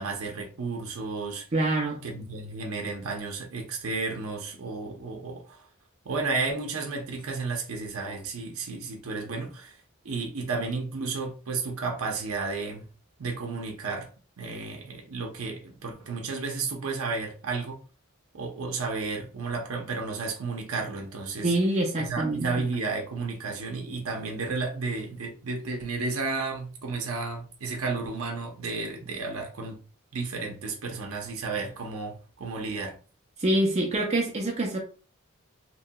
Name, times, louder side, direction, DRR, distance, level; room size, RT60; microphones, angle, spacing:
voice 1, 0.0-1.5 2.0-5.7 6.0-12.9 13.2-14.1 14.4-17.8 18.3-21.5 22.0-29.8 30.1-32.9, right 4 dB, 75° right, 0.7 m, -32 dB
voice 2, 1.5-2.0 21.4-22.5 33.4-34.8, right 1 dB, 30° right, 0.5 m, -25 dB
2.9 x 2.8 x 2.2 m
head